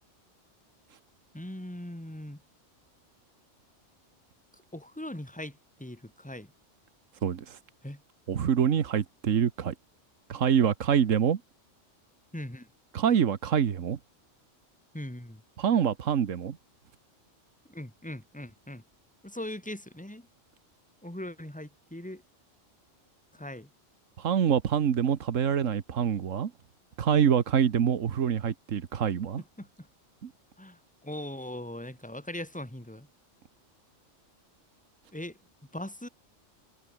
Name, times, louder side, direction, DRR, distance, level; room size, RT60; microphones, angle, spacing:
voice 1, 1.3-2.4 4.7-6.5 7.8-8.0 12.3-12.7 14.9-15.4 17.7-18.8 19.2-20.2 21.0-22.2 23.4-23.7 29.6-29.7 30.6-30.8 31.0-33.1 35.1-35.3 35.7-36.1, left 1 dB, 5° left, 3.2 m, -40 dB
voice 2, 7.2-7.6 8.3-9.7 10.3-11.4 12.9-14.0 15.6-16.6 24.2-26.5 27.0-29.4 30.2-30.3, right 8 dB, 85° right, 1.5 m, -25 dB
omnidirectional pair, 1.3 m